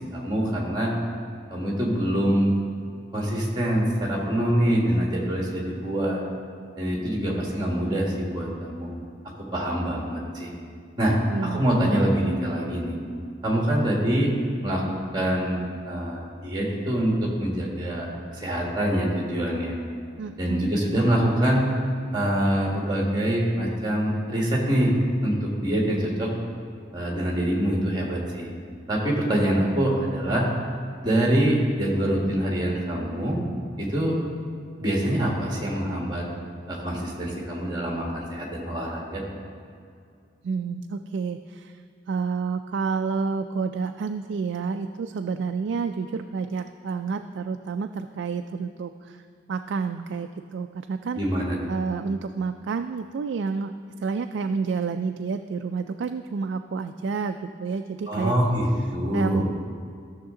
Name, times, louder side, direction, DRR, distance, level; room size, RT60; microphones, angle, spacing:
voice 1, 0.1-0.9 1.5-2.5 3.1-6.2 6.8-8.9 9.4-10.5 11.0-12.9 13.4-14.3 14.6-18.1 18.3-19.7 20.4-21.6 22.1-24.9 25.2-26.3 26.9-28.5 28.9-30.5 31.0-33.4 33.8-34.2 34.8-36.2 36.7-39.2 51.2-51.6 58.1-59.4, right 1 dB, 20° right, -2 dB, 1.7 m, -25 dB
voice 2, 11.3-11.7 20.2-20.7 40.4-41.7 42.1-49.2 49.5-51.2 51.7-53.7 54.0-58.3 59.1-59.4, right 5 dB, 70° right, 7 dB, 0.3 m, -29 dB
13.5 x 6.5 x 3.8 m, 2.3 s
head